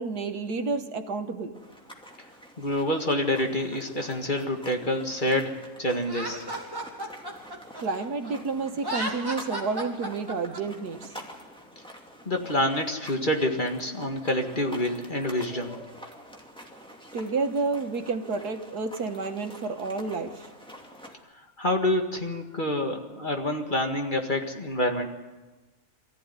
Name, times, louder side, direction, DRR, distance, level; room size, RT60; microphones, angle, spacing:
voice 1, 0.0-1.6 7.8-11.1 17.1-20.5, right 4 dB, 80° right, 7 dB, 1.9 m, -30 dB
sound 1, 1.5-21.1, equal, 5° left, 2.4 m, -47 dB
voice 2, 2.6-6.4 12.3-15.8 21.6-25.1, left 1 dB, 30° left, 3 dB, 2.0 m, -27 dB
Laughter, 6.0-8.3 8.7-10.6, right 1 dB, 15° right, 2.7 m, -34 dB
23.5 x 14.5 x 9.7 m, 1.2 s
omnidirectional pair, 1.7 m